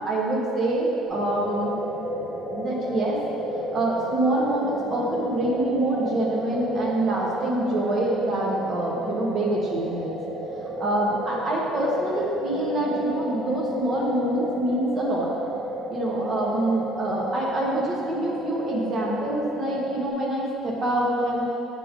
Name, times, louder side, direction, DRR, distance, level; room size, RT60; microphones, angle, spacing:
voice 1, 0.0-1.7 2.5-3.2 3.7-10.2 10.8-15.3 15.9-21.5, right 1 dB, 30° right, -3 dB, 1.2 m, -25 dB
sound 1, 1.0-20.1, right 1 dB, 55° right, 1.5 m, -32 dB
8.0 x 3.7 x 4.9 m, 2.6 s
cardioid pair, 160°, 0 cm